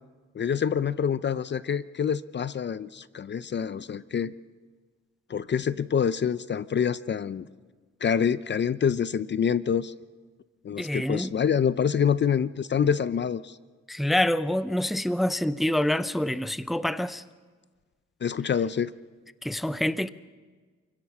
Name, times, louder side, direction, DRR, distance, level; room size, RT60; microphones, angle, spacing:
voice 1, 0.3-4.3 5.3-7.4 8.0-9.9 10.6-13.6 18.2-18.9, left 7 dB, 35° left, 0.6 m, -26 dB
voice 2, 10.8-11.3 13.9-17.2 19.4-20.1, left 1 dB, ahead, 0.6 m, -26 dB
28.0 x 17.0 x 6.1 m
cardioid pair, 90°, 30 cm